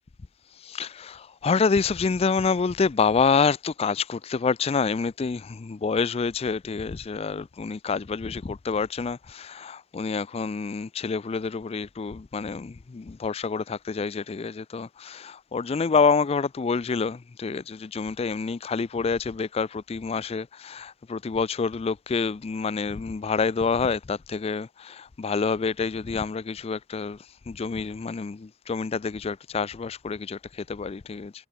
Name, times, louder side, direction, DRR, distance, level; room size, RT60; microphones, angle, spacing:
voice 1, 0.6-27.2 27.5-31.3, left 5 dB, 30° left, 0.4 m, -27 dB
head